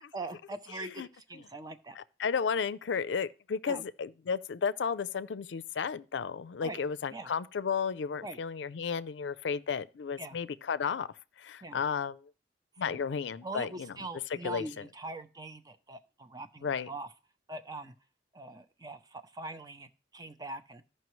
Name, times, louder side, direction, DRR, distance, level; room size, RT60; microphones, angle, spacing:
voice 1, 0.1-2.0 3.7-3.8 6.6-6.8 7.1-7.3 8.2-8.4 10.2-10.4 11.6-11.8 12.8-13.1 13.4-17.1 17.5-17.9 18.3-20.8, right 2 dB, 20° right, 0.5 m, -42 dB
voice 2, 0.8-1.1 1.3-1.4 2.0-12.3 12.8-13.9 14.4-14.8 16.6-16.9, left 6 dB, 90° left, 0.4 m, -33 dB
14.5 x 5.5 x 3.1 m
head